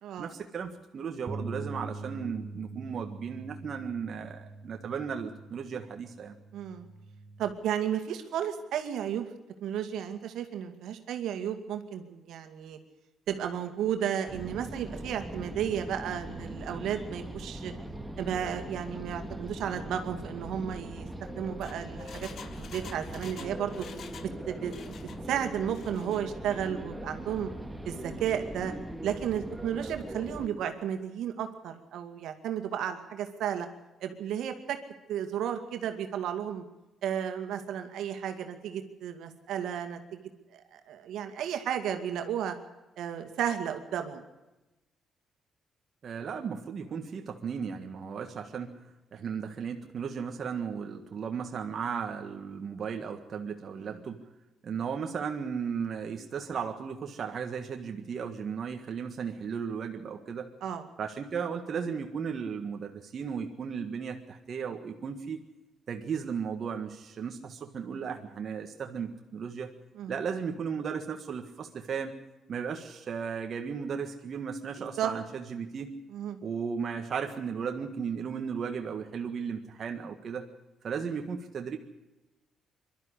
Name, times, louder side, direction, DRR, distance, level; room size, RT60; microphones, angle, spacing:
voice 1, 0.2-6.3 46.0-48.7 49.1-54.2 54.6-60.5 61.0-65.4 65.9-69.7 70.1-72.1 72.5-75.9 76.4-80.5 80.8-81.8, right 6 dB, 50° right, 4 dB, 1.6 m, -35 dB
Bass guitar, 1.3-7.5, right 3 dB, 30° right, 1.4 m, -43 dB
voice 2, 6.5-6.9 7.4-9.3 9.6-12.8 13.3-17.7 18.2-22.3 22.6-23.8 24.2-25.0 25.3-27.5 27.8-28.7 29.0-33.7 34.0-34.8 35.1-36.6 37.0-40.2 40.5-42.5 43.0-44.2 53.8-54.0 60.6-60.8 67.9-68.0 70.0-70.1 75.0-75.1 76.1-76.4, right 9 dB, 80° right, 6 dB, 2.2 m, -33 dB
sound 1, 14.3-30.5, right 1 dB, 5° right, 1.9 m, -40 dB
Engine, 21.4-24.3 24.6-25.2 25.6-26.2 26.6-26.7, left 6 dB, 60° left, 1.6 m, -48 dB
22.5 x 12.5 x 9.9 m, 1.0 s
cardioid pair, 90°, 0 cm